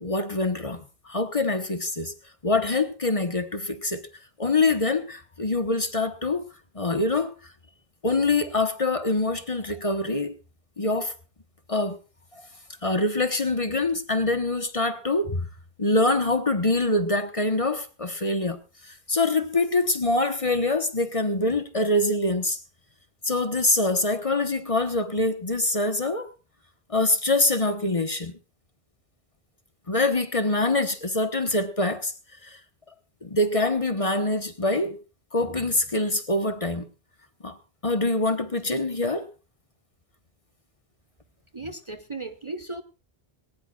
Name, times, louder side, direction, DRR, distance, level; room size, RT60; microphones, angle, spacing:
voice 1, 0.0-2.1 2.4-4.0 4.4-6.5 6.7-7.3 8.0-10.4 10.8-11.1 11.7-12.0 12.3-12.4 12.8-15.5 15.8-22.6 23.2-26.3 26.9-28.3 29.9-32.1 32.4-32.6 33.2-35.0 35.3-36.8 37.4-37.6 37.8-39.3, left 2 dB, 35° left, 1.2 m, -25 dB
voice 2, 41.5-42.8, right 2 dB, 30° right, 0.9 m, -36 dB
20.0 x 18.5 x 2.4 m
omnidirectional pair, 1.1 m